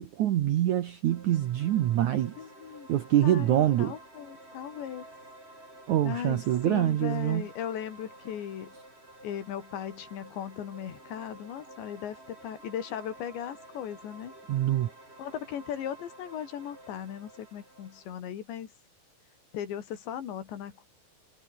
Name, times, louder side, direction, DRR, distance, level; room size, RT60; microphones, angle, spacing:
voice 1, 0.0-2.3 2.9-3.9 5.9-7.4 14.5-14.9, right 12 dB, 75° right, 1.8 m, -25 dB
sound 1, 1.1-18.0, right 1 dB, 15° right, 6.7 m, -51 dB
voice 2, 2.4-2.9 3.2-5.1 6.0-8.7 9.2-14.3 15.2-18.7 19.5-20.9, left 9 dB, 85° left, 5.0 m, -37 dB
omnidirectional pair, 5.0 m